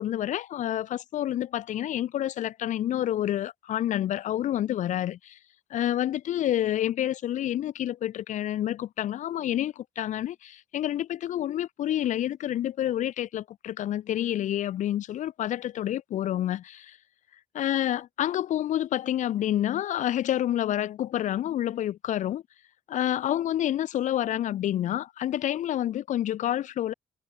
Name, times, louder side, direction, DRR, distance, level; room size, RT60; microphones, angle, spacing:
voice 1, 0.0-5.4 5.7-17.0 17.5-22.4 22.9-26.9, left 12 dB, 65° left, 2.4 m, -28 dB
hypercardioid pair, 45°, 14 cm